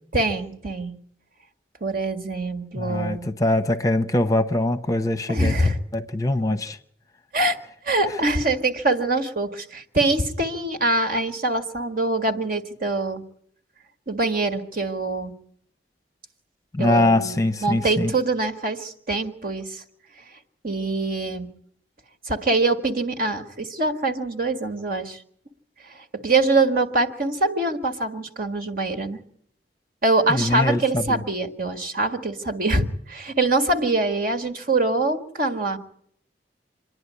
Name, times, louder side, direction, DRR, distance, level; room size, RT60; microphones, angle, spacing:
voice 1, 0.1-0.9 1.8-3.3 5.3-5.8 7.3-7.6 7.8-13.2 14.1-15.3 16.8-19.8 20.2-20.3 20.6-21.5 22.2-25.2 25.9-29.2 30.0-35.8, right 2 dB, 55° right, 1.8 m, -24 dB
voice 2, 2.8-5.5 5.9-6.8 16.7-18.1 30.3-31.2, left 1 dB, 20° left, 0.8 m, -22 dB
26.5 x 11.0 x 9.6 m
head